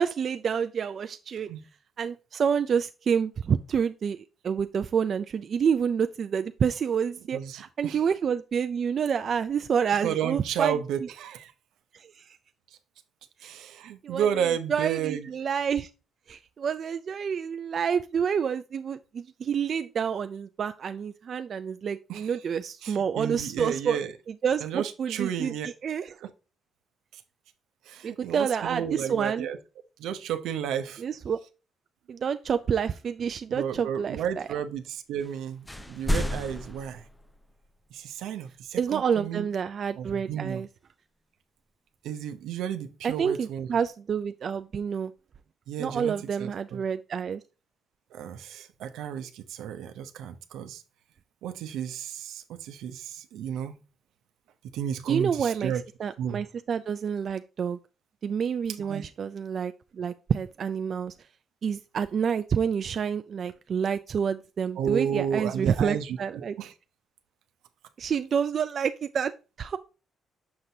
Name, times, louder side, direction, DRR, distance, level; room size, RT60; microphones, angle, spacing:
voice 1, 0.0-1.5 2.0-10.8 11.9-12.4 13.4-13.5 14.0-15.9 16.3-24.0 24.3-25.5 25.8-26.1 28.0-29.5 31.0-31.4 32.1-34.2 38.8-40.7 43.0-45.1 45.8-47.4 55.1-55.7 56.0-57.8 58.2-61.1 61.6-66.5 68.0-69.3 69.6-69.8, right 7 dB, 55° right, 0.3 m, -28 dB
voice 2, 7.3-8.0 10.0-11.5 13.4-15.3 22.1-22.4 22.8-24.1 24.6-25.7 26.2-26.3 27.1-27.2 27.9-29.6 30.0-31.0 33.5-37.0 37.9-39.5 40.0-40.6 42.0-43.8 45.7-46.8 48.1-50.8 51.4-53.8 54.7-55.8 56.2-56.4 58.8-59.0 64.8-66.7, right 9 dB, 85° right, 0.7 m, -32 dB
sound 1, 35.2-35.4 35.6-37.7, left 1 dB, 10° left, 0.4 m, -31 dB
6.5 x 5.8 x 2.7 m
cardioid pair, 90°, 0 cm